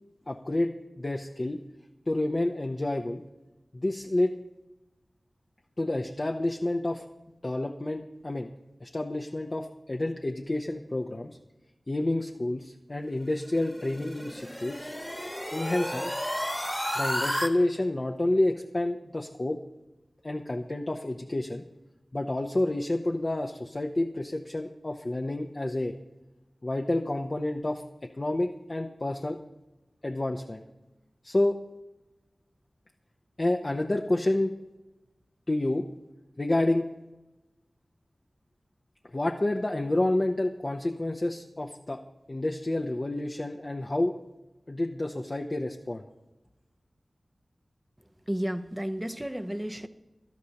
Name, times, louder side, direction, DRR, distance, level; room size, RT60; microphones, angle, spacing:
voice 1, 0.3-1.6 2.1-3.2 3.7-4.3 5.8-7.0 7.4-8.5 8.8-11.4 11.9-14.9 15.5-16.3 16.9-19.6 20.2-21.6 22.1-25.9 26.6-27.8 28.2-29.4 30.0-30.6 31.2-31.6 33.4-34.5 35.5-35.8 36.4-36.8 39.1-42.0 42.3-44.2 44.7-46.0, left 1 dB, 40° left, 1 dB, 0.7 m, -29 dB
sound 1, 13.5-17.5, equal, 5° left, 1.3 m, -32 dB
voice 2, 48.3-49.9, equal, 10° right, 9 dB, 0.7 m, -32 dB
18.0 x 12.5 x 2.9 m, 1.0 s
wide cardioid pair, 60°, 0 cm